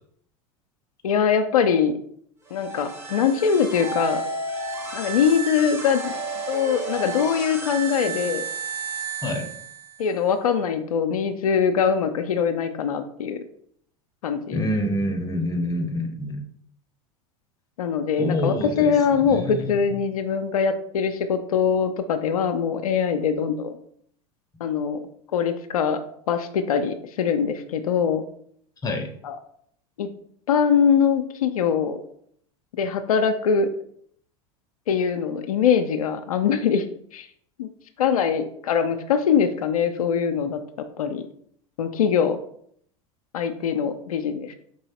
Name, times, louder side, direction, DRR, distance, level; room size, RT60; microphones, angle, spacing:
voice 1, 1.0-1.9 2.5-4.2 4.9-6.1 6.5-8.4 10.0-13.4 14.2-14.6 17.8-23.8 24.6-25.0 25.3-26.0 26.3-28.2 29.2-29.4 30.0-30.1 30.5-32.0 32.8-33.7 34.9-36.8 37.1-37.3 37.6-37.7 38.0-40.6 41.0-41.3 41.8-42.4 43.3-44.5, left 7 dB, 85° left, 7 dB, 0.4 m, -22 dB
sound 1, 2.5-10.1, right 4 dB, 15° right, 1.1 m, -32 dB
voice 2, 14.5-16.4 18.2-18.9 19.2-19.8 28.8-29.1, left 1 dB, 20° left, 4 dB, 0.8 m, -26 dB
4.6 x 3.0 x 2.8 m, 0.64 s
hypercardioid pair, 90°, 18 cm